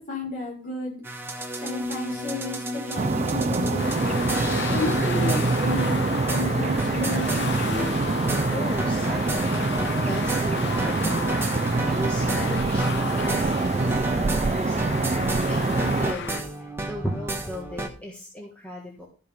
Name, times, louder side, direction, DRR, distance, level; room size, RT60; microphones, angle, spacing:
voice 1, 0.1-1.0 1.5-4.2 4.7-7.9, left 2 dB, 40° left, -3 dB, 6.1 m, -33 dB
sound 1, 1.0-17.9, right 1 dB, 10° right, 1.2 m, -33 dB
sound 2, 3.0-16.1, right 3 dB, 30° right, 0.4 m, -25 dB
sound 3, 3.8-16.4, left 5 dB, 55° left, 0.7 m, -33 dB
voice 2, 8.5-15.0 15.5-19.1, equal, 5° left, -3 dB, 1.7 m, -36 dB
13.5 x 5.4 x 5.4 m, 0.38 s
head